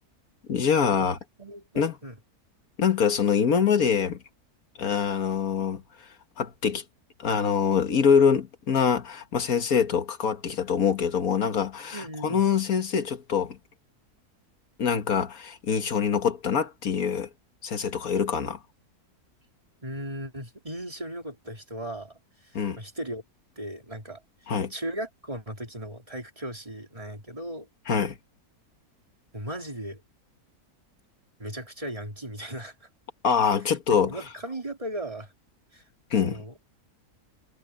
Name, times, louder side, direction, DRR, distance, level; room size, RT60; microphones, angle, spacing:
voice 1, 0.5-1.2 1.8-2.0 2.8-4.2 4.8-5.8 6.4-6.8 7.2-13.6 14.8-17.3 17.6-18.6 22.5-22.8 24.5-24.7 27.9-28.2 33.2-34.1 36.1-36.4, left 7 dB, 65° left, 1.9 m, -24 dB
voice 2, 1.4-2.1 11.9-12.4 19.8-23.2 23.6-24.2 24.7-27.7 29.3-30.0 31.4-32.9 33.7-35.3 35.7-35.8 36.2-36.6, right 1 dB, 20° right, 3.7 m, -37 dB
omnidirectional pair, 1.6 m